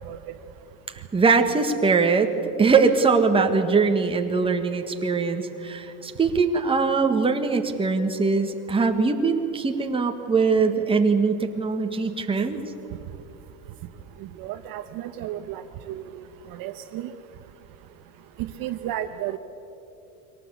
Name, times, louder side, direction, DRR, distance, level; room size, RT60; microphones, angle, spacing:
voice 1, 1.1-2.3 2.6-12.6, right 4 dB, 10° right, 4 dB, 1.6 m, -22 dB
voice 2, 14.4-17.1 18.4-19.4, right 12 dB, 50° right, 8 dB, 1.1 m, -33 dB
23.5 x 18.0 x 8.4 m, 2.9 s
supercardioid pair, 140°, 43 cm